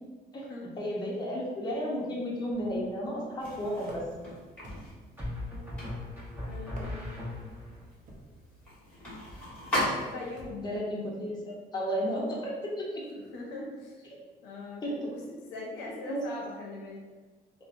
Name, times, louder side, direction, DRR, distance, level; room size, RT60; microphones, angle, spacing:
voice 1, 0.8-4.0 10.6-13.0 14.8-15.1 16.0-16.2, equal, 25° left, -4 dB, 0.6 m, -33 dB
sound 1, 2.5-3.0 5.2-7.8, left 1 dB, 10° right, 0.8 m, -38 dB
sound 2, 3.4-10.5, left 1 dB, 10° left, 1.3 m, -38 dB
sound 3, 3.9-4.3 4.6-5.1 5.8-6.3 6.6-7.3 8.1-8.4 9.3-9.5 10.4-10.7, right 1 dB, 50° right, 0.6 m, -47 dB
voice 2, 6.4-7.2 10.0-10.7 13.2-14.1 14.4-17.0, left 2 dB, 90° left, -2 dB, 0.6 m, -41 dB
2.7 x 2.0 x 2.4 m, 1.3 s
cardioid pair, 110°, 17 cm